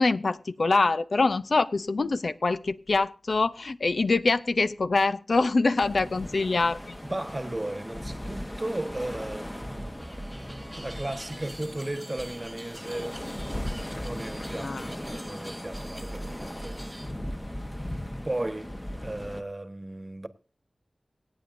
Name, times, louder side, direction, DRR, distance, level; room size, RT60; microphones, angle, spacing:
voice 1, 0.0-7.0 14.6-14.9, left 3 dB, 75° left, 0.5 m, -24 dB
sound 1, 5.8-19.4, left 1 dB, 20° left, 1.1 m, -38 dB
voice 2, 7.0-10.0 10.8-13.2 14.0-16.8 18.2-18.8 19.0-20.3, right 1 dB, 30° right, 1.2 m, -35 dB
sound 2, 9.6-17.1, right 1 dB, 10° right, 1.0 m, -43 dB
25.0 x 8.6 x 2.6 m
wide cardioid pair, 50°, 0 cm